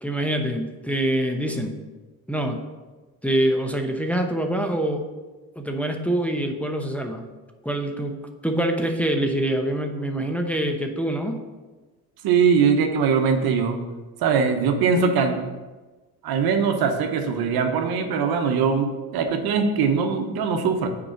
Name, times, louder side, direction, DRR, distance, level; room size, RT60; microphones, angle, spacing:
voice 1, 0.0-1.8 2.3-2.6 3.2-5.0 5.6-7.3 7.6-8.2 8.4-11.4, right 1 dB, 5° left, 2 dB, 0.9 m, -25 dB
voice 2, 12.2-13.8 14.2-15.4 16.2-20.9, right 6 dB, 70° right, 5 dB, 1.0 m, -21 dB
6.1 x 4.8 x 6.4 m, 1.2 s
cardioid pair, 85°, 38 cm